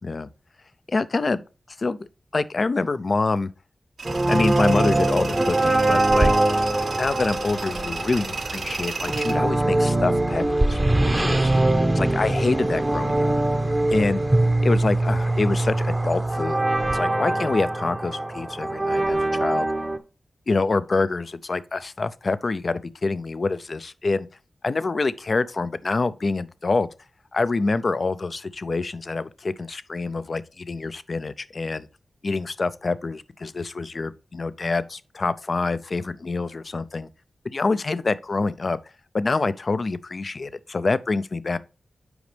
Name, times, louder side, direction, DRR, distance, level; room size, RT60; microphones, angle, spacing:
voice 1, 0.9-1.4 1.8-3.5 4.3-6.3 7.0-10.8 11.0-11.5 11.9-13.3 13.9-14.2 14.6-16.6 16.9-19.7 20.5-24.3 24.6-26.9 27.3-31.9 32.2-37.1 37.4-38.8 39.1-41.6, left 3 dB, 50° left, 0.5 m, -26 dB
sound 1, 4.0-20.0, right 1 dB, 25° right, 0.8 m, -22 dB
Tools, 4.0-9.3, right 4 dB, 90° right, 1.4 m, -34 dB
7.9 x 5.1 x 3.4 m
wide cardioid pair, 85°, 0 cm